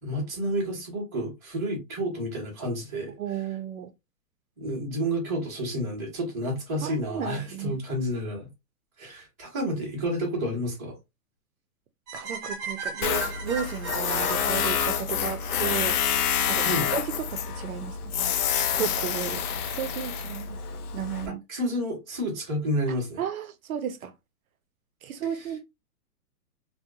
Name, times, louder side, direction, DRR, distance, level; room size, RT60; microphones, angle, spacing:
voice 1, 0.0-3.1 4.6-8.5 9.0-11.0 16.6-16.9 21.5-23.2 25.3-25.4, equal, 10° right, 0.5 m, -30 dB
voice 2, 3.2-3.9 6.8-7.8 12.1-16.0 16.5-16.7 16.9-18.0 18.7-20.6 20.9-21.4 22.9-24.1 25.0-25.6, right 9 dB, 65° right, 0.5 m, -33 dB
sound 1, 12.1-16.2, right 3 dB, 30° right, 0.9 m, -36 dB
Tools, 13.0-21.3, left 8 dB, 70° left, 0.5 m, -28 dB
2.6 x 2.1 x 2.5 m
hypercardioid pair, 170°, 47 cm